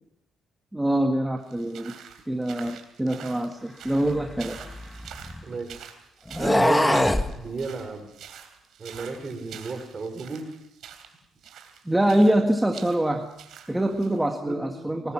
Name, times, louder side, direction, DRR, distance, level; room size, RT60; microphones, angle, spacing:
voice 1, 0.7-1.9 2.3-4.6 11.8-13.3 13.7-15.1, right 1 dB, 10° right, 4 dB, 1.6 m, -24 dB
sound 1, 1.4-14.2, right 8 dB, 75° right, 3.3 m, -46 dB
sound 2, 4.0-5.5 6.3-7.3, left 1 dB, 10° left, 1.4 m, -23 dB
voice 2, 5.4-5.8 6.4-8.1 8.8-10.5 14.4-15.1, right 3 dB, 40° right, 7 dB, 4.7 m, -33 dB
24.5 x 20.0 x 6.0 m, 0.81 s
cardioid pair, 90°, 0 cm